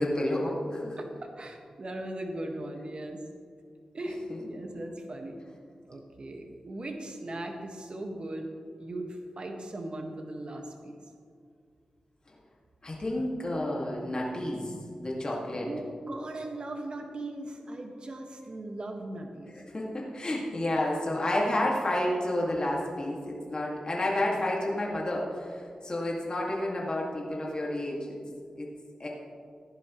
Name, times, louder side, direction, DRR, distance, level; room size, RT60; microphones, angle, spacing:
voice 1, 0.0-1.0 4.3-4.4 12.8-14.7 15.0-15.7 19.7-28.2 28.6-28.7 29.0-29.1, left 1 dB, 40° left, -3 dB, 2.1 m, -30 dB
voice 2, 1.0-3.2 3.9-5.4 5.9-8.5 8.8-11.0 15.3-19.5, right 1 dB, 50° right, 2 dB, 1.6 m, -38 dB
15.5 x 11.0 x 3.2 m, 2.2 s
cardioid pair, 65°, 2 cm